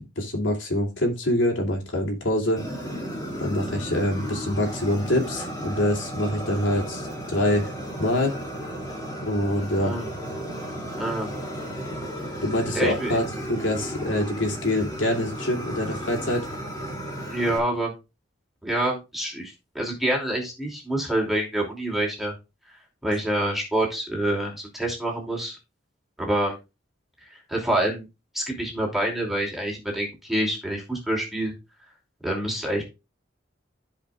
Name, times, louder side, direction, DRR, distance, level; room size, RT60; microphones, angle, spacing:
voice 1, 0.0-2.6 3.4-7.7 8.0-8.4 9.2-9.9 12.4-13.2 13.5-16.5, left 1 dB, 85° left, 1 dB, 2.8 m, -25 dB
Fire, 2.6-17.6, equal, 20° left, 2.6 m, -34 dB
voice 2, 11.0-11.3 12.7-13.2 17.3-17.9 18.6-22.3 23.0-25.6 26.2-26.6 27.3-28.0 28.3-31.5 32.2-32.9, right 1 dB, ahead, -1 dB, 2.8 m, -27 dB
15.0 x 5.1 x 2.4 m, 0.26 s
head